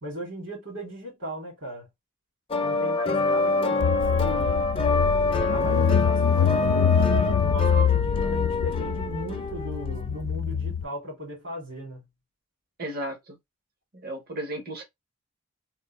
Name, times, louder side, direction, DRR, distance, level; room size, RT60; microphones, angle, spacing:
voice 1, 0.0-1.9 2.6-4.7 5.3-12.1, equal, 65° right, 2.4 m, -37 dB
sound 1, 2.5-10.1, left 2 dB, 25° left, 0.5 m, -26 dB
Car / Engine, 3.8-10.8, left 8 dB, 90° left, 0.3 m, -25 dB
voice 2, 12.8-13.4 13.9-14.8, right 1 dB, 45° right, 0.9 m, -34 dB
3.6 x 2.6 x 3.0 m
head